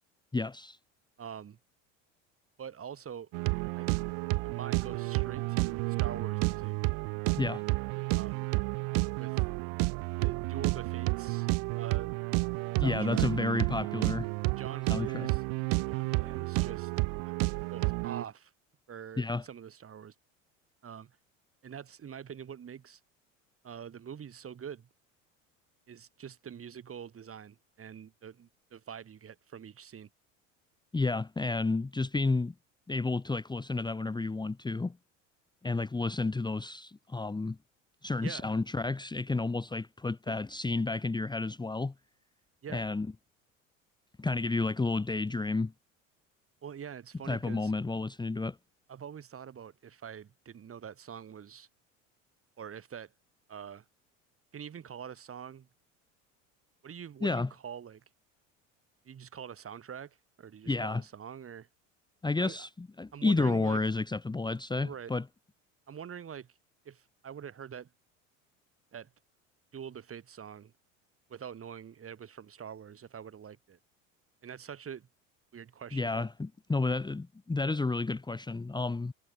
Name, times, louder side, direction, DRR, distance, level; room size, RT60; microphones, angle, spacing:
voice 1, 0.3-0.8 7.4-7.6 12.8-14.3 14.9-15.3 19.2-19.4 30.9-32.5 32.9-35.0 35.6-37.6 38.0-41.9 42.7-43.1 44.2-45.7 47.3-48.6 57.2-57.5 60.7-61.0 62.2-65.2 75.9-79.1, left 3 dB, 10° left, 1.4 m, -31 dB
voice 2, 1.2-1.6 2.6-3.3 3.8-4.0 4.4-6.7 8.1-8.5 9.2-9.5 10.2-11.5 11.8-12.1 12.8-13.3 14.6-15.4 15.9-16.9 17.2-17.3 17.7-18.5 18.9-20.1 20.8-21.2 21.6-23.0 23.6-24.9 25.9-30.1 38.2-38.4 40.3-40.4 42.6-42.9 46.6-47.7 48.9-51.7 52.6-53.1 53.5-53.8 54.5-55.7 56.8-58.0 59.0-61.7 62.4-62.7 63.1-63.8 64.8-65.1 65.9-66.5 66.9-67.9 68.9-69.1 69.7-70.7 71.3-73.8 74.4-75.1 75.5-76.3, right 8 dB, 35° right, 7.4 m, -45 dB
sound 1, 3.3-18.2, right 34 dB, 65° right, 1.6 m, -31 dB
hypercardioid pair, 80°, 38 cm